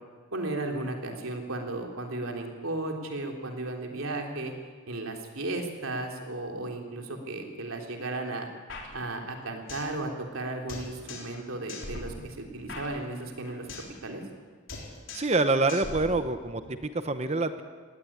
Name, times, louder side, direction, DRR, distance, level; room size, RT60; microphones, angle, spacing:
voice 1, 0.3-4.5 4.9-8.5 8.9-14.2, right 2 dB, 90° right, 2 dB, 3.6 m, -35 dB
sound 1, 8.7-10.0 10.2-10.3 10.7-11.4 11.7-14.0 14.2-14.4 14.7-15.4 15.7-16.7, left 2 dB, 65° left, 4.2 m, -41 dB
voice 2, 15.1-17.6, right 2 dB, 30° right, 10 dB, 0.9 m, -26 dB
19.5 x 17.5 x 10.0 m, 1.5 s
head